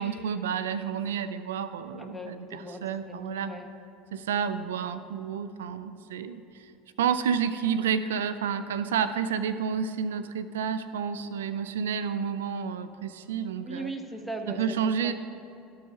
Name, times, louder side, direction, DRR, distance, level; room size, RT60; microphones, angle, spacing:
voice 1, 0.0-3.5 4.1-6.7 7.0-13.9 14.6-15.1, right 7 dB, 85° right, 12 dB, 0.3 m, -30 dB
voice 2, 2.0-3.7 13.6-15.1, right 1 dB, 5° right, 4 dB, 1.1 m, -39 dB
12.5 x 4.7 x 5.6 m, 2.7 s
hypercardioid pair, 85°, 0 cm